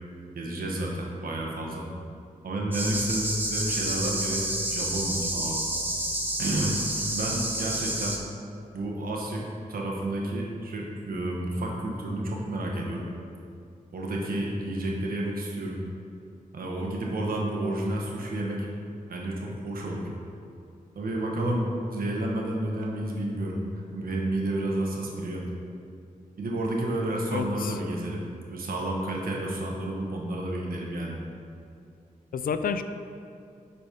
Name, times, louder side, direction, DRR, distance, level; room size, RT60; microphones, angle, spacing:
voice 1, 0.3-1.9 2.4-5.6 6.4-8.2 8.7-13.0 13.9-15.8 16.5-18.7 19.1-20.1 20.9-23.6 23.9-25.4 26.4-28.2 28.5-31.1, right 1 dB, 80° right, -2 dB, 1.2 m, -30 dB
sound 1, 2.7-8.2, right 1 dB, 15° right, 0.9 m, -29 dB
voice 2, 27.3-27.8 32.3-32.8, left 6 dB, 80° left, 10 dB, 0.4 m, -29 dB
7.9 x 4.2 x 5.1 m, 2.4 s
wide cardioid pair, 110°, 15 cm